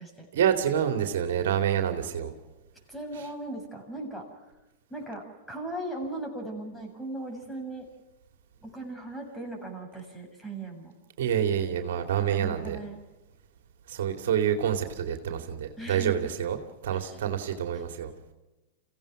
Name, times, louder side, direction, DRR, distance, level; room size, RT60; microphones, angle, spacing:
voice 1, 0.3-2.3 11.2-12.8 13.9-18.1, right 9 dB, 70° right, 6 dB, 2.5 m, -27 dB
voice 2, 2.9-4.2 4.9-7.9 8.6-10.9 12.3-13.0 15.8-16.3 16.9-17.2 17.7-17.8, right 2 dB, 5° left, 2 dB, 7.3 m, -38 dB
28.5 x 17.0 x 6.1 m, 1.1 s
hypercardioid pair, 105°, 0 cm